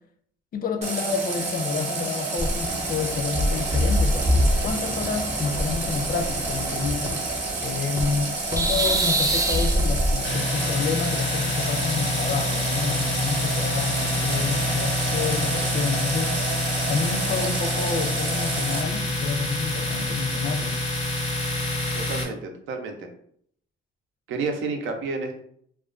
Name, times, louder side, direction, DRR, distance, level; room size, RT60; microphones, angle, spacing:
voice 1, 0.5-7.2 7.6-16.4 16.9-20.8, left 5 dB, 45° left, 6 dB, 0.4 m, -29 dB
Water tap faucet, 0.8-18.8, right 3 dB, 35° right, 0.7 m, -30 dB
sound 1, 2.4-8.2 8.5-10.1, equal, 15° right, 0.3 m, -25 dB
Domestic sounds home sounds, 10.2-22.2, left 1 dB, 85° left, 1.0 m, -27 dB
voice 2, 21.9-23.1 24.3-25.4, right 4 dB, 80° right, 4 dB, 0.5 m, -30 dB
2.4 x 2.2 x 2.4 m, 0.65 s
cardioid pair, 90°, 20 cm